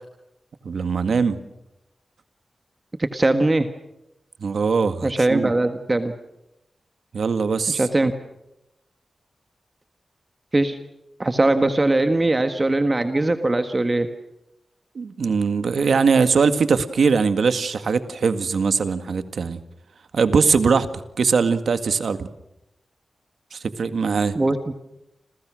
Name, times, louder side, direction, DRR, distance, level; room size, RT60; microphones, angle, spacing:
voice 1, 0.6-1.4 4.4-5.5 7.1-7.8 15.0-19.6 20.1-20.9 21.2-22.3 23.5-24.3, right 5 dB, 75° right, 10 dB, 1.9 m, -21 dB
voice 2, 3.0-3.7 5.0-6.1 7.7-8.1 10.5-10.8 11.2-14.1 24.3-24.6, right 2 dB, 25° right, 8 dB, 1.5 m, -20 dB
30.0 x 27.5 x 6.3 m, 0.87 s
wide cardioid pair, 150°, 0 cm